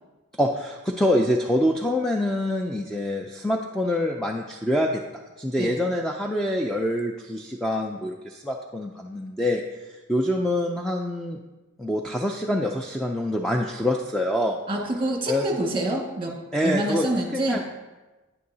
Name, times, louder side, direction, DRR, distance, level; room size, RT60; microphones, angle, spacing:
voice 1, 0.4-5.0 5.4-11.4 11.8-14.6 15.3-15.4 16.5-17.1 17.3-17.6, left 1 dB, ahead, 1 dB, 0.4 m, -25 dB
voice 2, 14.7-16.3 16.6-17.6, right 1 dB, 25° right, -1 dB, 1.7 m, -26 dB
9.5 x 9.3 x 2.7 m, 1.2 s
head